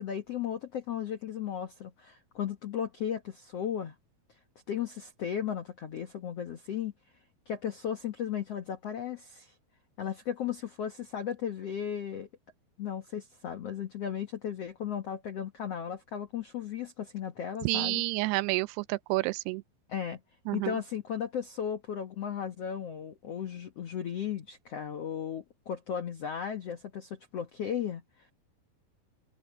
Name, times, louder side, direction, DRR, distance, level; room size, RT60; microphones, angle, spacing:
voice 1, 0.0-3.9 4.7-6.9 7.5-9.5 10.0-12.3 12.8-18.0 19.9-20.2 20.5-28.3, left 9 dB, 70° left, 1.5 m, -35 dB
voice 2, 17.6-19.6 20.5-20.8, right 21 dB, 85° right, 2.6 m, -29 dB
omnidirectional pair, 4.7 m